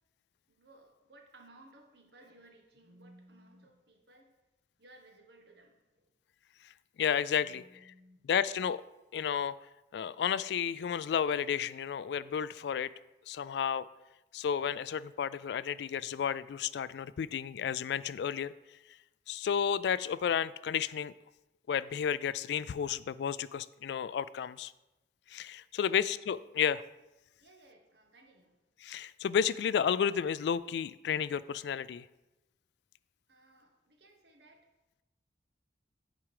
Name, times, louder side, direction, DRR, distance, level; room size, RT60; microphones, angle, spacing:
voice 1, 0.5-4.3 4.8-6.1 7.3-8.2 25.8-26.0 27.4-28.6 33.3-34.7, right 1 dB, 65° right, 3 dB, 1.4 m, -59 dB
voice 2, 7.0-7.6 8.3-8.8 9.1-9.6 9.9-12.9 13.3-13.9 14.3-18.5 19.3-21.1 21.7-24.7 25.3-26.8 28.8-32.1, left 8 dB, 70° left, 17 dB, 0.3 m, -32 dB
8.9 x 5.0 x 4.8 m, 0.97 s
head